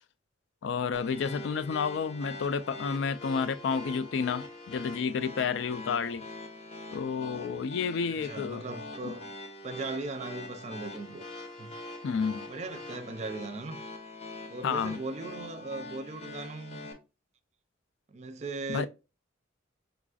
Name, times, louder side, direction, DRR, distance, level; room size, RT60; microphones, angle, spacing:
voice 1, 0.6-6.2 6.9-8.6 9.0-9.1 12.0-12.5 14.6-15.0 18.7-18.9, left 6 dB, 65° left, 0.3 m, -30 dB
sound 1, 0.9-16.9, left 2 dB, 30° left, 0.7 m, -44 dB
voice 2, 8.2-9.3 9.6-11.8 12.5-13.8 14.5-16.9 18.1-18.9, right 3 dB, 35° right, 0.4 m, -38 dB
4.8 x 2.4 x 2.3 m
head